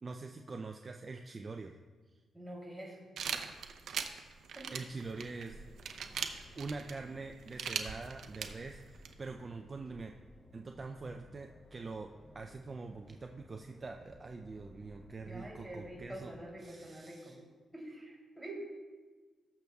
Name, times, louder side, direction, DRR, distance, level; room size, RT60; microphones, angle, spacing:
voice 1, 0.0-1.7 4.7-5.6 6.6-10.1 10.5-12.1 12.3-16.3 16.6-17.4, right 3 dB, 35° right, 4 dB, 0.4 m, -44 dB
voice 2, 2.3-3.1 4.5-4.8 15.2-17.4 17.7-18.6, right 1 dB, 5° right, -3 dB, 3.1 m, -46 dB
sound 1, 3.2-9.1, right 7 dB, 75° right, 0.7 m, -40 dB
sound 2, 5.0-16.4, left 1 dB, 15° left, 0.8 m, -58 dB
20.0 x 6.8 x 2.3 m, 1.4 s
cardioid pair, 100°, 0 cm